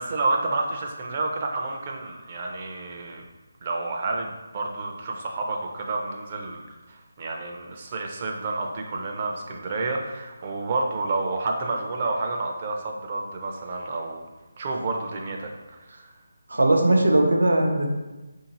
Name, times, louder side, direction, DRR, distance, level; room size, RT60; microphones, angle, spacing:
voice 1, 0.0-3.2 3.6-14.2 14.6-16.1, right 3 dB, 35° right, 1 dB, 0.6 m, -30 dB
voice 2, 16.5-18.0, right 1 dB, 80° right, 1 dB, 0.7 m, -19 dB
5.2 x 2.7 x 2.9 m, 1.1 s
figure-of-eight pair, 160°, 0 cm